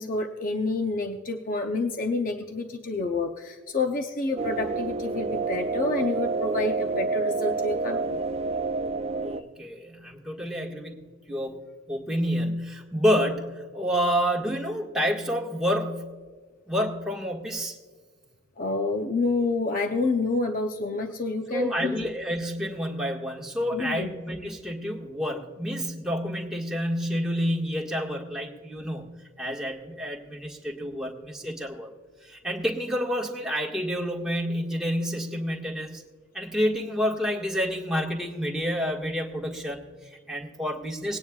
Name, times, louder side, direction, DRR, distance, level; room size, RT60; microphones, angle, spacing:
voice 1, 0.0-8.2 18.6-22.1 23.7-24.1, left 3 dB, 45° left, 5 dB, 0.7 m, -28 dB
sound 1, 4.4-9.4, right 3 dB, 30° right, 0.4 m, -28 dB
voice 2, 9.2-11.6 11.9-16.1 16.7-17.8 21.5-29.1 29.4-31.9 32.2-36.0 36.3-41.2, equal, 5° right, -2 dB, 1.7 m, -29 dB
20.0 x 9.6 x 2.4 m, 1.5 s
head